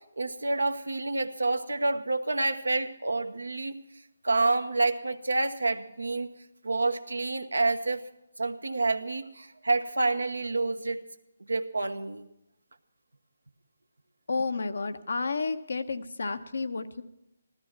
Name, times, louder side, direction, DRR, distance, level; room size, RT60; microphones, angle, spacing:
voice 1, 0.2-3.8 4.2-6.3 6.6-8.0 8.4-11.0 11.5-12.2, right 3 dB, 85° right, 9 dB, 1.0 m, -28 dB
voice 2, 14.3-17.0, left 4 dB, 70° left, 9 dB, 1.0 m, -31 dB
14.5 x 13.5 x 5.9 m, 0.87 s
figure-of-eight pair, 150°, 0 cm